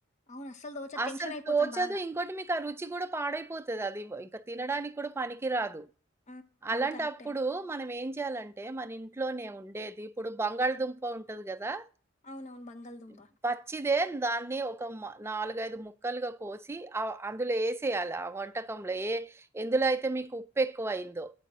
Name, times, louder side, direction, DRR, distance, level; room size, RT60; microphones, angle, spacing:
voice 1, 0.3-2.0 6.3-6.4 6.7-7.4 12.2-13.3, left 2 dB, 35° left, 0.7 m, -42 dB
voice 2, 1.0-5.9 6.6-11.9 13.1-13.2 13.4-21.3, right 3 dB, 10° right, 0.3 m, -32 dB
8.6 x 8.3 x 2.8 m
head